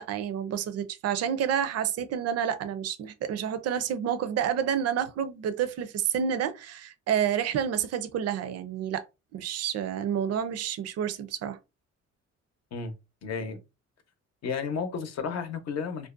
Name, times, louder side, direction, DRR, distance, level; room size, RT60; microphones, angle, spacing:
voice 1, 0.0-9.0 9.3-11.6, right 9 dB, 55° right, 0.5 m, -29 dB
voice 2, 13.2-13.6 14.4-16.1, left 5 dB, 60° left, 0.7 m, -32 dB
2.5 x 2.1 x 2.4 m
cardioid pair, 90°, 30 cm